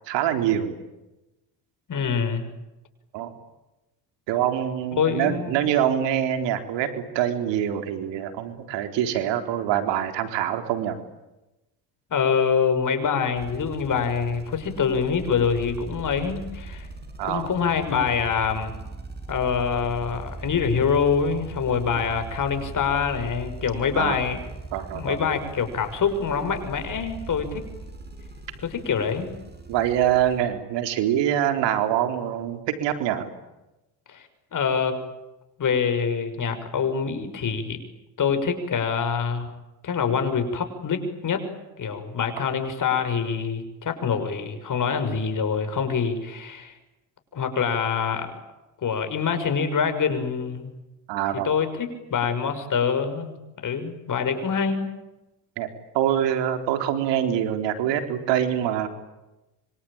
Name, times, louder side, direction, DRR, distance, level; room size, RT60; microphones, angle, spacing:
voice 1, 0.1-0.8 3.1-3.3 4.3-11.0 17.2-17.5 23.9-24.2 24.7-25.2 29.7-33.3 42.4-42.5 51.1-51.5 55.6-55.7 55.9-58.9, right 10 dB, 80° right, 7 dB, 4.1 m, -25 dB
voice 2, 1.9-2.5 5.0-5.5 12.1-16.9 17.2-18.7 19.3-24.4 24.9-27.6 28.6-29.3 34.1-35.0 35.6-37.8 38.2-39.5 39.8-41.5 41.8-46.7 47.3-48.3 48.8-50.8 51.4-53.4 53.6-54.9, left 6 dB, 45° left, 8 dB, 6.4 m, -25 dB
sound 1, 13.4-30.4, right 3 dB, 25° right, 6.9 m, -40 dB
26.5 x 25.0 x 8.9 m, 0.99 s
cardioid pair, 95°, 43 cm